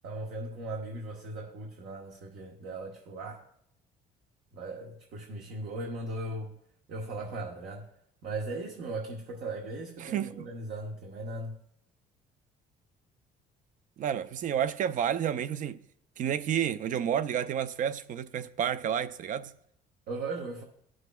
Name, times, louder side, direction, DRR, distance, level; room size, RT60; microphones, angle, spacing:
voice 1, 0.0-3.4 4.5-6.5 6.9-7.9 8.2-11.5 20.1-20.6, right 2 dB, 70° right, 1.0 m, -38 dB
voice 2, 10.0-10.5 14.0-15.8 16.2-19.5, right 9 dB, 50° right, 0.4 m, -30 dB
17.5 x 6.3 x 2.3 m
cardioid pair, 110°, 17 cm